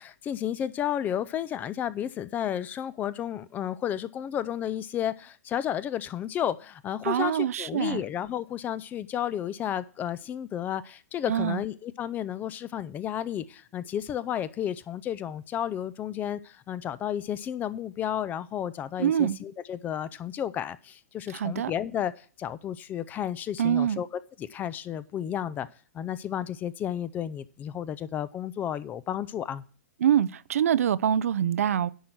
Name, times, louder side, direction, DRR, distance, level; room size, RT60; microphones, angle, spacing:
voice 1, 0.0-24.1 24.4-25.7 25.9-29.6, left 10 dB, 20° left, 0.4 m, -32 dB
voice 2, 7.0-8.0 11.3-11.6 19.0-19.4 21.3-21.7 23.6-24.0 30.0-31.9, right 9 dB, 65° right, 0.4 m, -25 dB
10.0 x 4.4 x 7.8 m
figure-of-eight pair, 115°, 8 cm